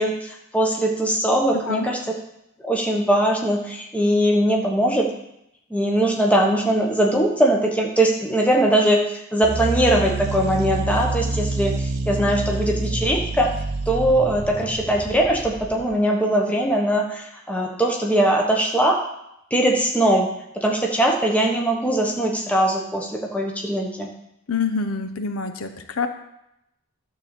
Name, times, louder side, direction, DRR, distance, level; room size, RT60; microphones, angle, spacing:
voice 1, 0.0-2.0 2.6-5.1 5.7-13.5 13.9-19.0 19.5-24.1, right 1 dB, 5° left, 0 dB, 1.1 m, -21 dB
sound 1, 9.4-15.9, right 3 dB, 50° right, 0.7 m, -27 dB
voice 2, 24.5-26.1, left 5 dB, 75° left, 8 dB, 0.8 m, -26 dB
11.5 x 3.9 x 7.0 m, 0.82 s
head